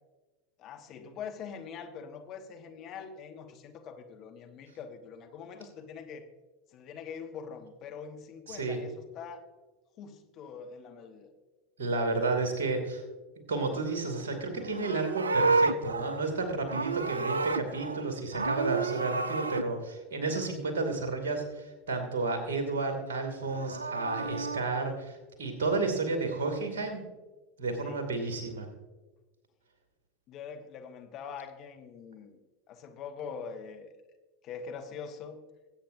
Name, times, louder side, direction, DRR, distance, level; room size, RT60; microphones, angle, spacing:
voice 1, 0.6-6.2 6.7-9.4 10.0-11.3 27.8-28.0 30.3-32.4 32.7-34.0 34.4-35.5, left 6 dB, 40° left, 5 dB, 1.1 m, -43 dB
voice 2, 8.5-8.8 11.8-13.0 13.5-27.0 27.6-28.7, right 3 dB, 60° right, 5 dB, 2.5 m, -32 dB
Livestock farm animals working animals, 14.6-18.0 18.3-19.6 23.4-24.6, right 3 dB, 75° right, 0.4 m, -30 dB
21.5 x 8.7 x 2.7 m, 1.2 s
figure-of-eight pair, 80°, 0 cm